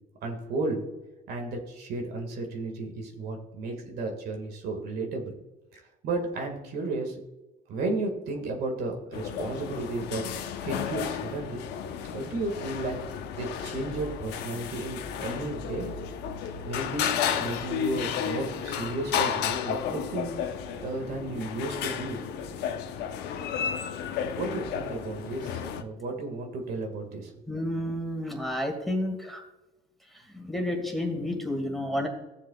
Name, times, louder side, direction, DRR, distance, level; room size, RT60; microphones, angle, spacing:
voice 1, 0.2-0.8 1.3-5.3 5.7-7.2 7.7-10.2 10.6-11.6 12.1-15.9 16.6-20.3 20.8-22.2 24.4-27.3, right 2 dB, 70° right, 3 dB, 2.0 m, -33 dB
sound 1, 9.1-25.8, left 8 dB, 80° left, 0.9 m, -33 dB
voice 2, 27.5-29.4 30.3-32.1, left 1 dB, ahead, 2 dB, 2.2 m, -30 dB
15.0 x 7.5 x 2.4 m, 1.0 s
cardioid pair, 110°, 17 cm